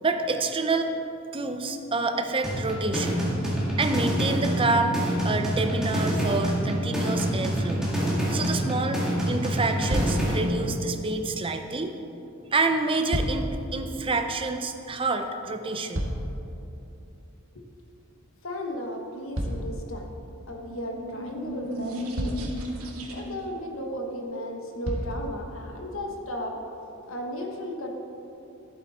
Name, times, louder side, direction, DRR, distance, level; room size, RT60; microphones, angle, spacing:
voice 1, 0.0-0.9 1.3-5.0 5.2-7.9 8.3-11.9 12.5-16.0, right 3 dB, 25° right, 6 dB, 0.6 m, -28 dB
sound 1, 2.4-10.4, equal, 5° right, 1.9 m, -26 dB
sound 2, 9.9-10.4 12.7-13.6 15.5-16.5 19.3-20.3 21.5-21.6 22.1-22.6 24.0-24.1 24.8-25.2 26.0-26.1, equal, 65° right, 1.6 m, -30 dB
voice 2, 18.4-20.0 20.5-22.4 23.1-26.6 27.1-27.9, equal, 65° left, 2 dB, 1.3 m, -35 dB
sound 3, 20.6-23.5, equal, 80° right, 1.2 m, -35 dB
11.5 x 7.8 x 4.2 m, 2.9 s
head